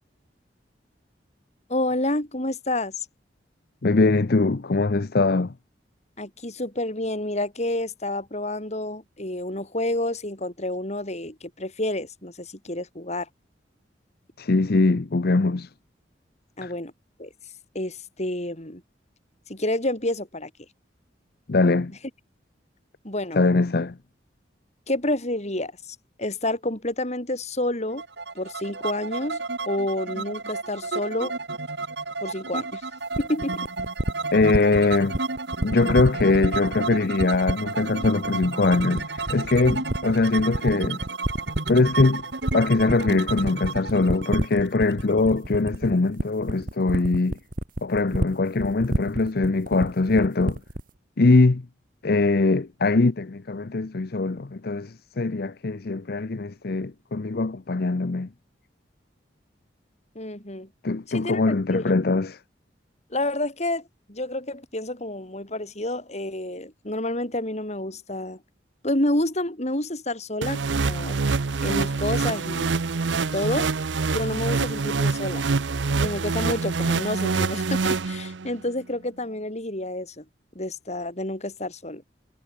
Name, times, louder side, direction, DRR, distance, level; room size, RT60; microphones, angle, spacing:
voice 1, 1.7-3.1 6.2-13.3 16.6-16.9 17.2-17.3 17.7-18.8 19.5-20.5 23.0-23.4 24.9-28.0 28.3-31.3 32.2-32.8 33.2-33.7 60.1-60.7 61.1-61.9 63.1-68.4 68.8-71.2 71.6-72.8 73.3-73.7 74.1-75.4 76.0-80.2 80.5-82.0, left 1 dB, 40° left, 6.2 m, -29 dB
voice 2, 3.8-5.5 14.4-15.7 16.6-16.7 21.5-21.9 23.4-24.0 34.3-35.2 35.6-41.0 41.7-42.2 42.5-47.4 47.8-50.6 51.2-51.6 52.0-58.3 60.8-62.4, left 3 dB, 55° left, 0.7 m, -22 dB
sound 1, 28.0-45.7, right 3 dB, 65° right, 2.2 m, -32 dB
sound 2, 33.1-50.9, right 1 dB, 50° right, 2.7 m, -28 dB
sound 3, 70.4-78.6, right 4 dB, 90° right, 0.7 m, -25 dB
head